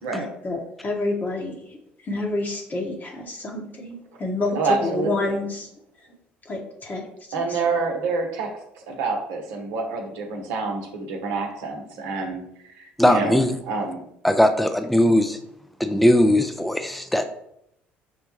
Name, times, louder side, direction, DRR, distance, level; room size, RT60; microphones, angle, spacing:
voice 1, 0.1-1.8 2.0-5.7 6.4-7.0, left 2 dB, 30° left, -1 dB, 0.9 m, -28 dB
voice 2, 4.5-5.4 7.3-13.4 13.6-14.0, right 4 dB, 70° right, 2 dB, 0.8 m, -27 dB
voice 3, 13.0-13.5 14.2-15.4 15.8-17.2, left 1 dB, ahead, 7 dB, 0.4 m, -19 dB
6.2 x 2.2 x 3.0 m, 0.75 s
hypercardioid pair, 55°, 6 cm